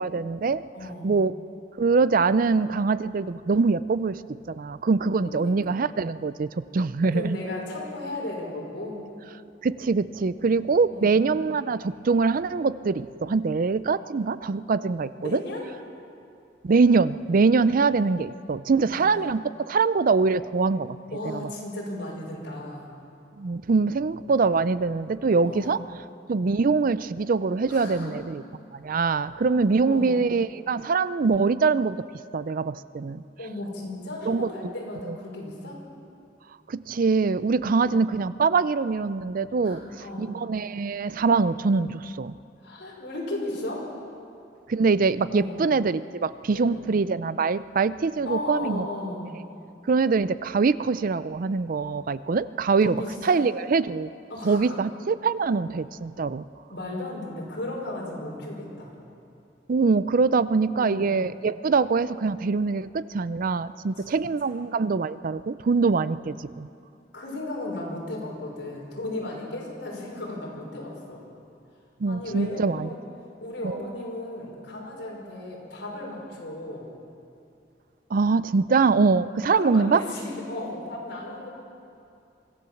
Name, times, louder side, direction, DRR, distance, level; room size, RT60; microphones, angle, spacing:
voice 1, 0.0-0.7 1.0-1.3 1.8-4.2 4.5-7.4 9.6-15.4 16.6-21.0 21.2-21.5 23.4-25.8 26.3-28.4 28.7-32.0 32.3-33.2 34.2-34.5 35.1-35.2 36.7-39.8 40.2-42.3 44.7-48.8 49.9-54.1 54.4-56.4 59.7-66.7 72.0-72.9 73.6-73.8 78.1-80.0, right 4 dB, 50° right, 15 dB, 0.4 m, -23 dB
voice 2, 0.7-1.1 5.2-5.8 7.0-9.0 10.9-11.2 15.2-15.6 18.9-19.2 21.1-22.9 25.5-25.8 27.7-28.2 29.9-30.2 33.4-35.8 37.8-38.0 39.6-40.3 42.6-43.9 45.3-45.6 46.5-46.9 48.3-49.3 52.8-53.4 54.3-54.8 56.7-58.9 60.7-61.2 64.1-64.2 67.1-71.2 72.0-73.0 73.4-76.9 79.5-81.5, left 1 dB, 65° left, -3 dB, 5.6 m, -35 dB
24.5 x 16.0 x 7.1 m, 2.6 s
head